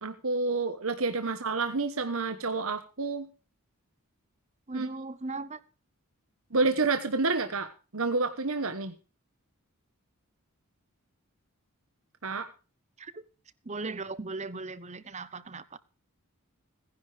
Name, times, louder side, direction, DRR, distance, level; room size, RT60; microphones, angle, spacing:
voice 1, 0.0-3.3 4.7-4.9 6.5-8.9 12.2-12.5, right 3 dB, 65° right, 1.3 m, -29 dB
voice 2, 4.7-5.6 13.0-13.2 13.6-15.8, right 3 dB, 30° right, 0.9 m, -38 dB
17.0 x 10.5 x 5.0 m
head